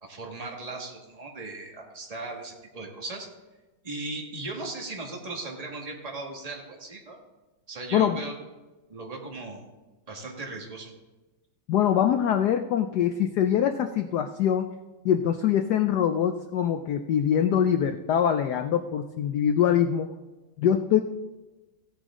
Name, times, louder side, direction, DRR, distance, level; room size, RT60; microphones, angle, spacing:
voice 1, 0.0-3.3 3.8-7.2 7.7-8.3 8.9-9.6 10.1-10.9, right 2 dB, 20° right, 0 dB, 1.6 m, -37 dB
voice 2, 11.7-14.7 15.0-20.1 20.6-21.0, left 9 dB, 85° left, 8 dB, 0.9 m, -23 dB
16.0 x 9.0 x 3.7 m, 1.1 s
omnidirectional pair, 2.4 m